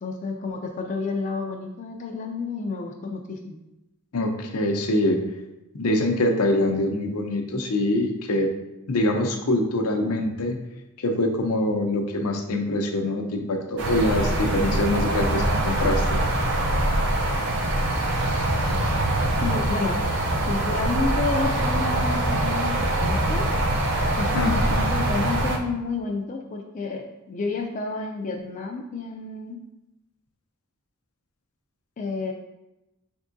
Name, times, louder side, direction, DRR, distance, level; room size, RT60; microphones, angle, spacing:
voice 1, 0.0-3.6 19.4-20.0 20.5-23.5 24.2-29.6 32.0-32.3, left 4 dB, 35° left, 1 dB, 0.4 m, -30 dB
voice 2, 4.1-5.2 5.7-8.5 8.9-10.6 11.0-16.2 24.3-24.6, left 1 dB, 80° left, 3 dB, 0.6 m, -24 dB
sound 1, 13.8-25.6, right 1 dB, 55° right, 0.6 m, -23 dB
5.2 x 3.5 x 2.6 m, 0.94 s
head